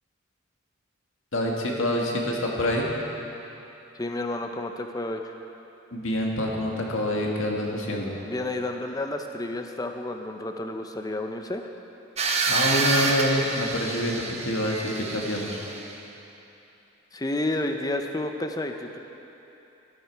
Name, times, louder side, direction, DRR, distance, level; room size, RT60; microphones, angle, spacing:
voice 1, 1.3-2.9 5.9-8.2 12.5-15.6, left 1 dB, 75° left, -1 dB, 1.8 m, -26 dB
voice 2, 3.9-5.3 8.3-11.6 17.1-19.0, left 2 dB, 20° left, 5 dB, 0.6 m, -30 dB
sound 1, 12.2-16.0, right 3 dB, 30° right, 0.9 m, -28 dB
13.5 x 11.5 x 4.6 m, 3.0 s
head